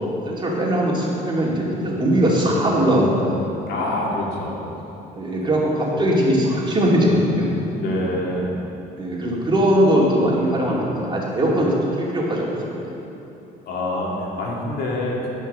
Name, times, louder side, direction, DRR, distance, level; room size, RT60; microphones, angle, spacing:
voice 1, 0.0-3.4 5.1-7.5 9.0-13.0, equal, 30° right, -4 dB, 2.5 m, -20 dB
voice 2, 3.6-4.6 7.7-8.6 13.7-15.3, left 1 dB, 70° left, -3 dB, 2.3 m, -26 dB
14.5 x 5.6 x 6.6 m, 2.9 s
cardioid pair, 110°, 17 cm